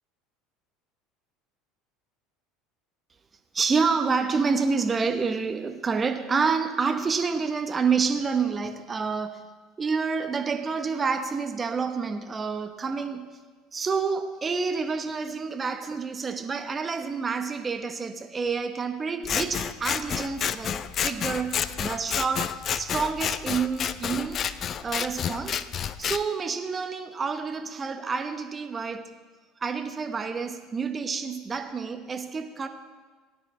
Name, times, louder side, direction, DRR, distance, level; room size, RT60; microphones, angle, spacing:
voice 1, 3.5-9.4 9.8-13.3 13.7-24.4 24.8-25.6 26.0-29.1 29.6-32.7, right 5 dB, 25° right, 8 dB, 1.0 m, -28 dB
Scissors, 19.2-26.2, left 8 dB, 40° left, 0.5 m, -30 dB
18.0 x 9.5 x 3.3 m, 1.4 s
hypercardioid pair, 70°, 0 cm